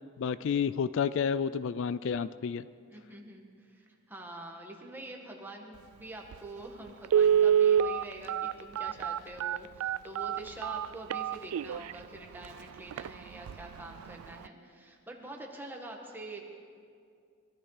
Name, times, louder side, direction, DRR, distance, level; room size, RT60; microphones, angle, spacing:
voice 1, 0.2-2.7, left 6 dB, 65° left, 16 dB, 0.3 m, -30 dB
voice 2, 2.9-16.5, right 2 dB, 10° right, 0 dB, 1.8 m, -46 dB
Telephone, 6.3-6.4 7.0-11.9 12.4-12.5 12.9-13.1 13.5-13.8 14.1-14.2, right 9 dB, 85° right, 0.3 m, -26 dB
22.5 x 13.0 x 5.0 m, 2.3 s
head